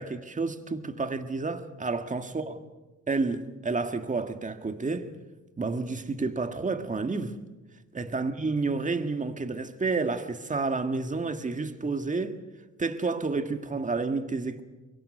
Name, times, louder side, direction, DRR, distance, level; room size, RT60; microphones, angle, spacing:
voice 1, 0.0-2.6 3.1-5.1 5.6-7.4 7.9-12.4 12.8-14.6, right 3 dB, 25° right, 1.8 m, -30 dB
24.5 x 22.0 x 6.4 m
cardioid pair, 90°, 30 cm